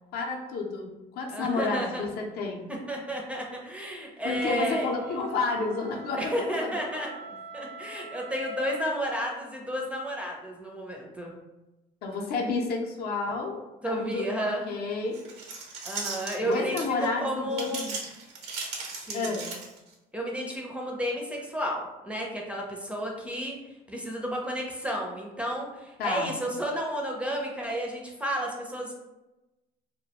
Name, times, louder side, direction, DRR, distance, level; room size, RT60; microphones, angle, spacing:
voice 1, 0.1-2.7 4.2-7.1 12.0-13.6 14.0-14.2 14.7-15.2 16.4-17.9 19.1-19.5 26.0-26.3, left 4 dB, 65° left, 0 dB, 0.5 m, -30 dB
voice 2, 1.3-2.1 2.7-4.9 6.2-7.1 7.5-11.3 13.8-14.7 15.9-17.8 19.1-19.4 20.1-23.6 23.9-28.9, equal, 5° right, -1 dB, 0.4 m, -32 dB
Wind instrument woodwind instrument, 4.3-9.3, right 4 dB, 70° right, 0.4 m, -43 dB
sound 1, 15.1-17.1 17.5-19.9, right 4 dB, 90° right, 0.8 m, -36 dB
2.2 x 2.1 x 2.8 m, 1.0 s
cardioid pair, 110°, 17 cm